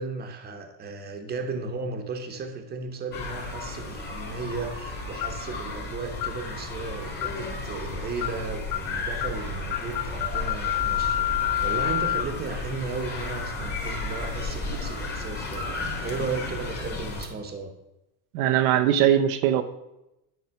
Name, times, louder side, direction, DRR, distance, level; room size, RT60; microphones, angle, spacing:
voice 1, 0.0-11.3 11.6-17.7, right 4 dB, 25° right, 5 dB, 1.0 m, -35 dB
sound 1, 3.1-17.3, left 3 dB, 25° left, 1.8 m, -34 dB
sound 2, 5.2-5.5 6.2-6.4 7.2-7.5 8.2-8.4 8.7-8.9 9.2-9.4 9.7-12.2, left 13 dB, 80° left, 0.8 m, -28 dB
voice 2, 18.3-19.6, right 10 dB, 90° right, 8 dB, 0.8 m, -21 dB
9.7 x 4.3 x 5.7 m, 0.91 s
cardioid pair, 145°, 42 cm